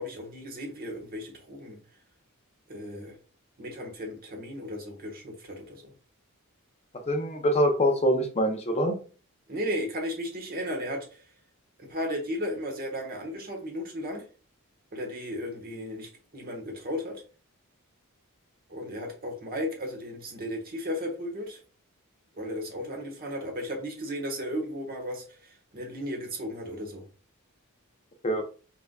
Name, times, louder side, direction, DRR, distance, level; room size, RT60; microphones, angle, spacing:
voice 1, 0.0-1.8 2.7-3.2 3.6-5.9 9.5-11.2 11.8-14.2 14.9-17.2 18.7-21.6 22.3-27.0, equal, 40° right, 2 dB, 1.3 m, -35 dB
voice 2, 7.1-9.0 28.2-28.4, equal, 30° left, 4 dB, 0.6 m, -24 dB
4.6 x 3.9 x 2.2 m, 0.38 s
head